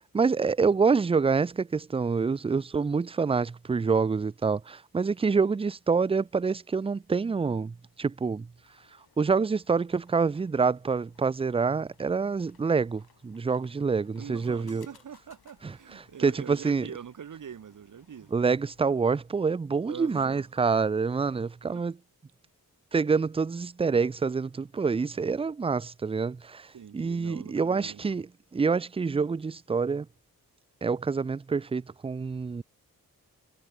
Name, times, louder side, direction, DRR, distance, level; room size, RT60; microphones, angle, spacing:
voice 1, 0.0-8.5 9.2-14.9 15.6-15.7 16.2-16.9 18.3-22.0 22.9-26.7 26.9-28.3 28.5-30.1 30.8-32.6, right 5 dB, 15° right, 0.4 m, -27 dB
sound 1, 8.5-18.8, left 8 dB, 80° left, 3.5 m, -64 dB
voice 2, 14.2-18.3 19.9-20.5 21.3-21.8 26.7-28.1, right 8 dB, 55° right, 1.1 m, -44 dB
cardioid pair, 50°, 38 cm